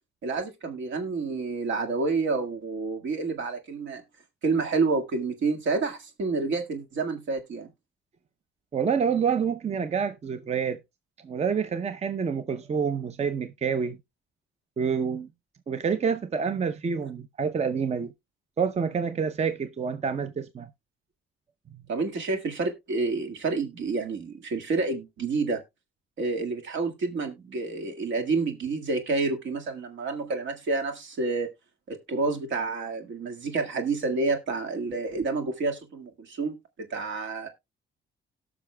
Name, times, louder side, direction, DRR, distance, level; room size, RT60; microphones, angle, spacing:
voice 1, 0.2-4.0 4.4-7.7 21.9-25.6 26.2-31.5 31.9-37.5, right 3 dB, 70° right, 1.8 m, -29 dB
voice 2, 8.7-10.8 11.2-14.0 14.8-15.3 15.7-18.1 18.6-20.7 21.7-21.8, right 6 dB, 35° right, 0.6 m, -27 dB
18.0 x 6.1 x 2.2 m
cardioid pair, 90°, 20 cm